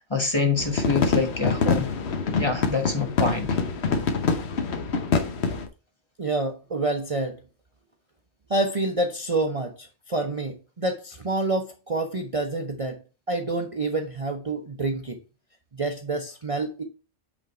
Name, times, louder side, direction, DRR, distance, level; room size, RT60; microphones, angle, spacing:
voice 1, 0.1-1.9 2.4-3.6, left 4 dB, 25° left, 1.3 m, -25 dB
sound 1, 0.6-5.7, left 4 dB, 65° left, 1.2 m, -25 dB
voice 2, 6.2-7.4 8.5-13.0 13.3-15.2 15.7-16.8, right 2 dB, 35° right, 0.8 m, -27 dB
8.5 x 3.9 x 4.3 m
omnidirectional pair, 1.2 m